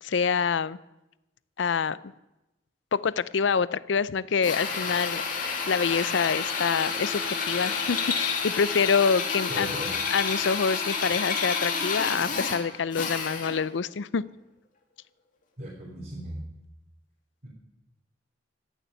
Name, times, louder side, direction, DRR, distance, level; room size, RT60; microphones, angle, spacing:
voice 1, 0.0-0.8 1.6-2.1 2.9-9.7 10.1-14.2, left 6 dB, 80° left, 18 dB, 0.5 m, -26 dB
Drill, 4.4-13.7, left 5 dB, 50° left, 2.4 m, -30 dB
voice 2, 9.5-10.0 15.6-16.5 17.4-17.5, equal, 50° right, -5 dB, 3.5 m, -37 dB
15.0 x 7.0 x 10.0 m, 0.97 s
head